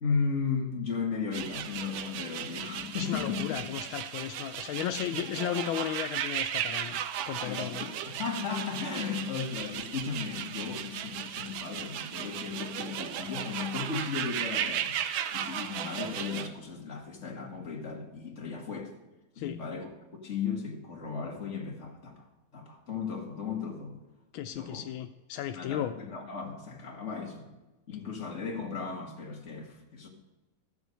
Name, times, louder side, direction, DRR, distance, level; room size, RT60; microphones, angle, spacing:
voice 1, 0.0-3.7 5.1-5.2 7.4-15.0 15.3-18.9 19.4-19.9 20.2-22.3 22.5-24.0 24.5-24.8 25.5-27.5 27.9-30.1, left 5 dB, 35° left, 2.1 m, -35 dB
sound 1, 1.3-16.5, right 10 dB, 80° right, 1.5 m, -36 dB
voice 2, 3.0-7.0 7.3-7.9 19.4-19.6 24.3-25.9, left 11 dB, 80° left, 1.4 m, -35 dB
13.5 x 7.1 x 6.7 m
omnidirectional pair, 2.2 m